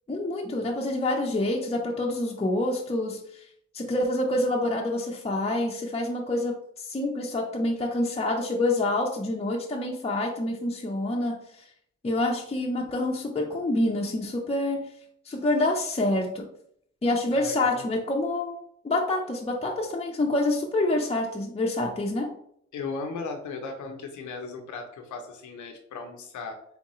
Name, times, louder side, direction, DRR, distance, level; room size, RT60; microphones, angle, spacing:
voice 1, 0.1-3.2 3.7-11.4 12.0-14.8 15.3-16.4 17.0-18.6 18.8-22.3, left 2 dB, 20° left, 0 dB, 0.6 m, -27 dB
voice 2, 17.3-17.9 22.7-26.6, left 4 dB, 85° left, 3 dB, 0.7 m, -37 dB
3.6 x 3.5 x 3.0 m, 0.68 s
cardioid pair, 70°, 29 cm